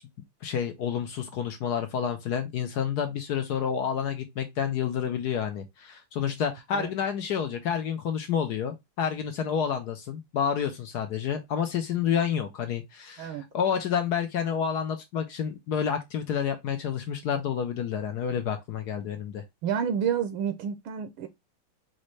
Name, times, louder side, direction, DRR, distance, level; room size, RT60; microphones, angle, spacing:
voice 1, 0.4-19.4, left 8 dB, 65° left, 1.0 m, -29 dB
voice 2, 19.6-21.3, right 8 dB, 75° right, 1.5 m, -29 dB
5.2 x 2.6 x 3.1 m
omnidirectional pair, 2.3 m